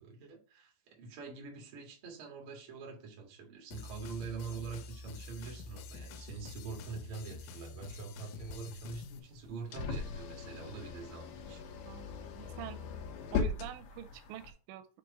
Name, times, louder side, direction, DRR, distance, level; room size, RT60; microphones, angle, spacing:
voice 1, 0.0-11.6, right 5 dB, 55° right, 0 dB, 1.5 m, -45 dB
sound 1, 3.7-9.2, left 4 dB, 90° left, 3.1 m, -47 dB
sound 2, 8.2-14.5, left 5 dB, 70° left, 2.6 m, -39 dB
voice 2, 11.9-12.8 13.3-15.0, right 12 dB, 90° right, 10 dB, 3.2 m, -46 dB
7.5 x 3.2 x 4.8 m, 0.37 s
omnidirectional pair, 5.4 m